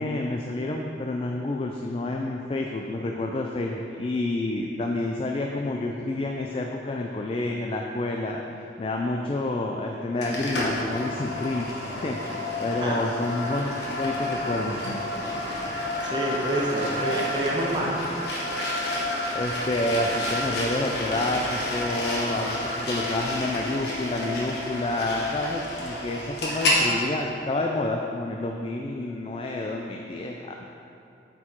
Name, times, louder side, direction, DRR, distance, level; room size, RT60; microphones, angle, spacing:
voice 1, 0.0-14.8 19.3-30.6, left 2 dB, 30° left, 1 dB, 0.3 m, -29 dB
sound 1, 10.2-26.8, left 1 dB, 70° left, 1.3 m, -30 dB
voice 2, 16.0-18.0 26.6-27.0, right 1 dB, 25° right, -4 dB, 0.7 m, -28 dB
8.3 x 4.6 x 4.3 m, 2.7 s
head